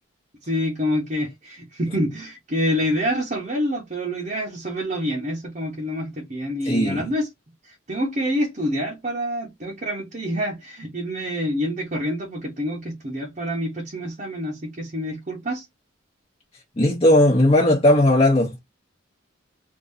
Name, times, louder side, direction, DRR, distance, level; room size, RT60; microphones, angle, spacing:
voice 1, 0.4-7.3 7.6-15.7, equal, 35° right, 0.9 m, -27 dB
voice 2, 6.6-7.0 16.8-18.6, left 1 dB, 30° left, 0.9 m, -17 dB
3.5 x 2.7 x 2.7 m
head